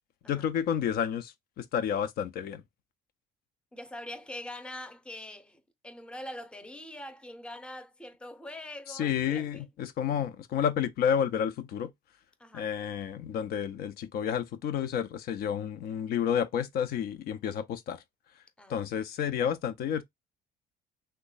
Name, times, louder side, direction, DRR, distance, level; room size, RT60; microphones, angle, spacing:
voice 1, 0.3-2.6 8.9-11.9 12.5-18.0 18.7-20.0, left 8 dB, 65° left, 0.4 m, -30 dB
voice 2, 3.7-9.7 12.4-12.7 18.6-18.8, left 1 dB, 5° left, 0.6 m, -43 dB
3.0 x 2.1 x 3.9 m
cardioid pair, 110°, 17 cm